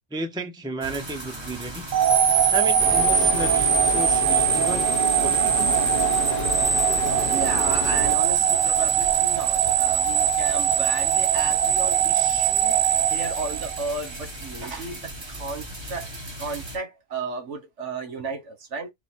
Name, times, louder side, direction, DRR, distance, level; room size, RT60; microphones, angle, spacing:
voice 1, 0.1-1.9 2.5-4.9 5.2-5.8, right 2 dB, 5° right, 0.6 m, -33 dB
sound 1, 0.8-16.8, right 2 dB, 25° right, 1.1 m, -37 dB
sound 2, 1.9-14.1, right 8 dB, 45° right, 0.8 m, -21 dB
sound 3, 2.8-8.2, left 4 dB, 55° left, 0.9 m, -31 dB
voice 2, 7.2-12.8 13.1-16.1 16.4-18.9, right 4 dB, 75° right, 1.5 m, -33 dB
4.8 x 2.1 x 4.3 m
omnidirectional pair, 1.2 m